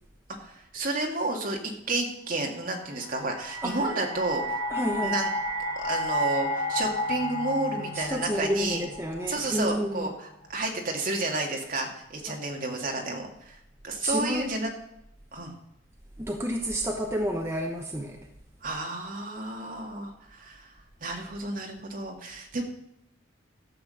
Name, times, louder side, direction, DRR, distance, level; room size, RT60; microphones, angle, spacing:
voice 1, 0.4-1.6 1.9-4.6 5.0-5.3 5.8-8.9 9.3-13.6 13.8-14.7 15.3-15.5 18.6-20.7 21.0-22.6, right 2 dB, 45° right, 1 dB, 2.1 m, -31 dB
sound 1, 2.9-10.0, left 1 dB, 45° left, 1.4 m, -32 dB
voice 2, 4.7-5.2 7.9-10.1 14.0-14.6 16.2-18.3, equal, 15° right, 1 dB, 0.9 m, -30 dB
13.0 x 7.6 x 6.4 m, 0.81 s
head